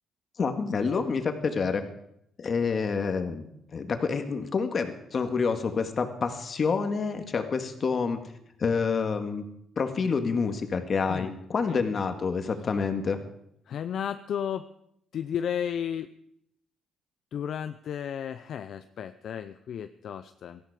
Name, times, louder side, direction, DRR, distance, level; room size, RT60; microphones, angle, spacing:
voice 1, 0.4-1.8 2.4-8.2 8.6-9.4 9.8-13.2, left 5 dB, 45° left, 7 dB, 1.9 m, -28 dB
voice 2, 13.7-14.7 15.1-16.1 17.3-20.6, left 9 dB, 65° left, 10 dB, 0.6 m, -33 dB
17.5 x 13.5 x 4.9 m, 0.74 s
cardioid pair, 90°, 0 cm